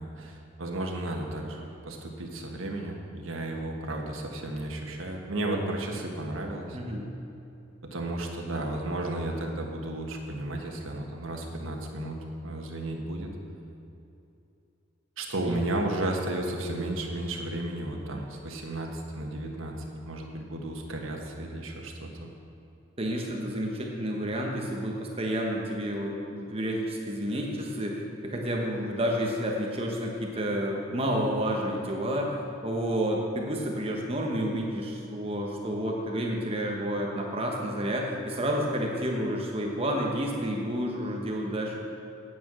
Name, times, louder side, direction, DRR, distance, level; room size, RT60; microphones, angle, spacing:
voice 1, 0.0-6.8 7.8-13.3 15.2-22.3, right 1 dB, 75° right, 1 dB, 1.5 m, -33 dB
voice 2, 6.7-7.0 15.5-15.6 23.0-41.8, equal, 30° right, 0 dB, 1.2 m, -30 dB
9.2 x 9.0 x 6.2 m, 2.7 s
head